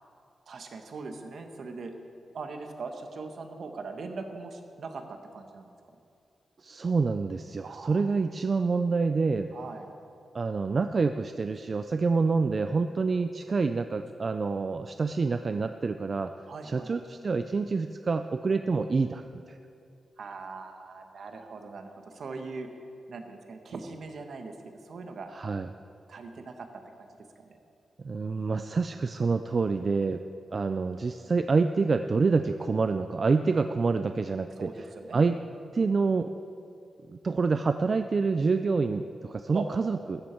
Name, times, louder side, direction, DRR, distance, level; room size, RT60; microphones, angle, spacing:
voice 1, 0.5-2.0 2.3-5.7 7.6-8.0 9.5-9.9 16.5-16.9 20.2-22.7 23.1-24.5 24.8-25.3 26.1-27.1 27.4-27.6 34.6-35.2 39.5-39.6, right 4 dB, 60° right, 5 dB, 1.3 m, -40 dB
voice 2, 6.6-9.5 10.3-16.3 16.6-19.6 25.3-25.7 28.0-30.2 30.5-34.7 35.1-35.4 35.7-36.3 37.1-40.2, right 4 dB, 35° right, 8 dB, 0.4 m, -27 dB
15.0 x 13.5 x 4.5 m, 2.5 s
wide cardioid pair, 150°, 0 cm